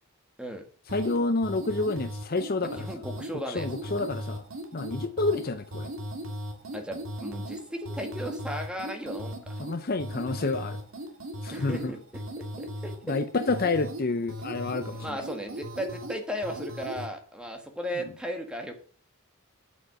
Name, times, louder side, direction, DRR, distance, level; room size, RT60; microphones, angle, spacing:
voice 1, 0.9-2.9 3.3-4.4 4.7-5.9 9.6-10.8 11.4-12.0 13.1-15.2, left 3 dB, 40° left, 0.6 m, -29 dB
sound 1, 0.9-17.1, equal, 60° right, 2.1 m, -38 dB
voice 2, 2.8-3.8 6.7-9.6 11.5-13.2 14.9-18.7, equal, 5° right, 1.5 m, -36 dB
9.3 x 7.1 x 5.9 m
head